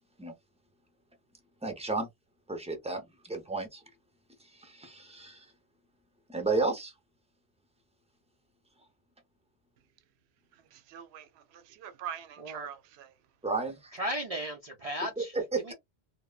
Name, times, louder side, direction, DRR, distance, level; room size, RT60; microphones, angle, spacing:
voice 1, 1.6-2.1 2.5-3.8 4.5-5.5 6.3-6.9 13.4-13.9 15.2-15.7, right 3 dB, 5° right, 0.6 m, -32 dB
voice 2, 10.5-13.2, right 9 dB, 75° right, 0.8 m, -44 dB
voice 3, 13.9-15.4 15.6-15.7, equal, 50° right, 0.4 m, -35 dB
3.0 x 2.1 x 2.3 m
omnidirectional pair, 1.1 m